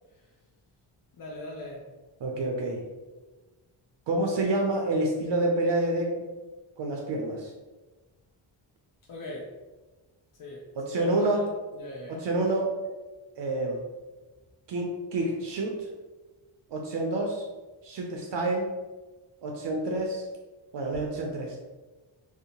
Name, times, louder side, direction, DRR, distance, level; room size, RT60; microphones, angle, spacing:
voice 1, 1.1-1.9 9.1-9.5 10.3-11.5 11.7-12.2, left 1 dB, 45° left, -3 dB, 0.5 m, -41 dB
voice 2, 2.2-2.8 4.1-6.3 6.8-7.5 10.8-11.5 12.2-12.8 13.4-13.8 14.7-15.9 16.7-17.4 17.8-18.7 19.4-20.3 20.7-21.6, right 2 dB, 60° right, 1 dB, 0.5 m, -28 dB
2.6 x 2.1 x 2.8 m, 1.2 s
cardioid pair, 75°, 49 cm